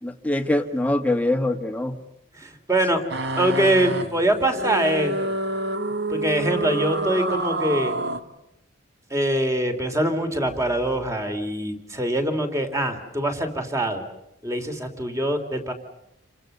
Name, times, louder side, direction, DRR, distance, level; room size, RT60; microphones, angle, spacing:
voice 1, 0.0-2.0, left 1 dB, 5° left, 6 dB, 1.8 m, -23 dB
voice 2, 2.3-3.0 3.3-5.3 6.1-7.9 9.1-14.0 14.4-15.7, right 1 dB, 15° right, 6 dB, 3.3 m, -24 dB
sound 1, 3.1-8.2, right 2 dB, 55° right, 2.1 m, -28 dB
30.0 x 25.0 x 6.8 m, 0.86 s
head